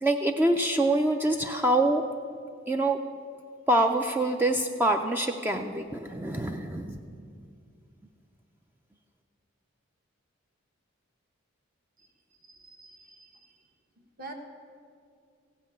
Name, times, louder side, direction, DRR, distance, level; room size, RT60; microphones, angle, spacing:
voice 1, 0.0-2.0 2.7-3.0 3.7-7.3, right 1 dB, 10° right, 4 dB, 0.3 m, -25 dB
voice 2, 12.5-13.3 14.2-14.3, right 2 dB, 45° right, 3 dB, 1.2 m, -45 dB
15.5 x 5.6 x 8.4 m, 2.3 s
head